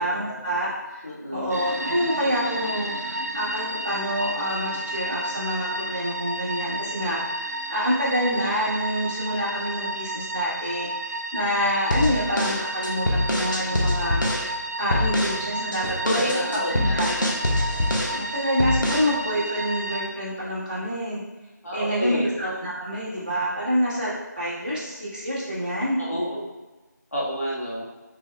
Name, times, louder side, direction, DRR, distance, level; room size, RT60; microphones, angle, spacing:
voice 1, 0.0-1.0 1.3-16.0 16.3-17.2 18.1-21.2 21.7-26.0, equal, 25° right, -10 dB, 1.3 m, -27 dB
voice 2, 1.0-1.5 13.6-13.8 16.0-17.1 21.6-22.3 26.0-26.4 27.1-27.9, equal, 55° left, -6 dB, 1.4 m, -28 dB
sound 1, 1.5-20.1, right 1 dB, 55° right, 0.6 m, -32 dB
sound 2, 11.9-14.5 14.9-15.4 15.7-18.2 18.6-19.1, left 1 dB, 85° left, 1.0 m, -25 dB
6.0 x 3.3 x 2.2 m, 1.2 s
figure-of-eight pair, 180°, 10 cm